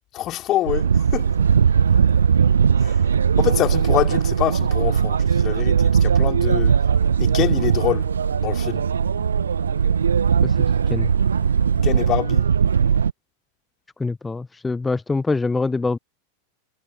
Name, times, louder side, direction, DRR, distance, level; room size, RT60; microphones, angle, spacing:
voice 1, 0.1-1.4 2.8-6.7 7.2-8.1 8.4-8.9 11.8-12.5, left 14 dB, 35° left, 4.1 m, -25 dB
sound 1, 0.7-13.1, right 7 dB, 70° right, 1.2 m, -19 dB
sound 2, 6.9-12.2, left 4 dB, 75° left, 3.7 m, -44 dB
voice 2, 14.0-16.0, left 3 dB, 10° left, 0.6 m, -24 dB
figure-of-eight pair, 90°, 0 cm